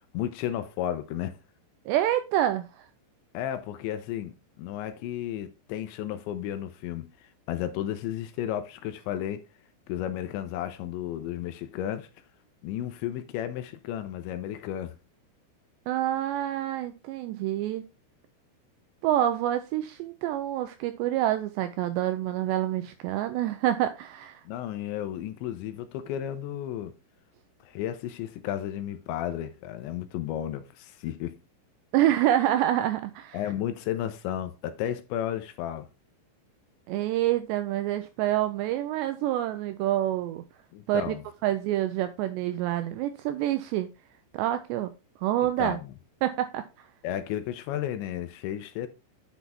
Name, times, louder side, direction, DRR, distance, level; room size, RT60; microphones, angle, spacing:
voice 1, 0.1-1.4 3.3-7.1 7.5-9.5 9.9-12.1 12.6-14.9 24.5-26.9 27.6-31.4 33.3-35.9 40.7-41.2 45.6-45.9 47.0-48.9, left 11 dB, 80° left, 2.8 m, -33 dB
voice 2, 1.9-2.8 15.9-17.9 19.0-24.4 31.9-33.4 36.9-40.4 40.9-41.1 41.4-43.9 44.3-44.9 45.2-45.8 46.2-46.6, right 13 dB, 85° right, 2.5 m, -27 dB
9.8 x 6.1 x 3.5 m
omnidirectional pair, 5.5 m